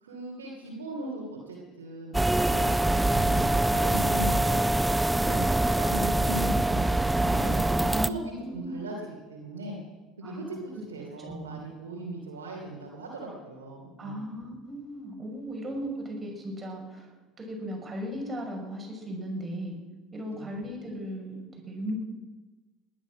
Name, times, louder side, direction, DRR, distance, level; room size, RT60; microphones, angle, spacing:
voice 1, 0.0-2.7 2.9-4.6 5.3-9.8 10.2-14.2 20.3-20.6, right 1 dB, 85° right, -3 dB, 2.9 m, -38 dB
sound 1, 2.1-8.1, right 1 dB, 10° right, 0.6 m, -24 dB
voice 2, 7.9-8.8 10.2-10.8 11.2-11.6 14.0-19.8 20.1-21.9, equal, 25° right, 0 dB, 6.3 m, -37 dB
19.5 x 12.0 x 6.2 m, 1.2 s
hypercardioid pair, 70°, 0 cm